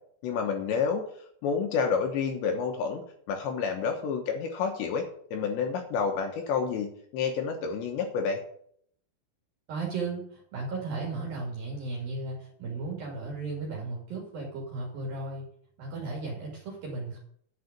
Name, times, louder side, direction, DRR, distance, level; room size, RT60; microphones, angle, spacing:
voice 1, 0.2-1.0 1.4-8.4, left 6 dB, 70° left, 4 dB, 2.9 m, -29 dB
voice 2, 9.7-15.4 15.8-17.2, right 3 dB, 50° right, -2 dB, 3.5 m, -35 dB
10.0 x 5.5 x 8.6 m, 0.63 s
omnidirectional pair, 6.0 m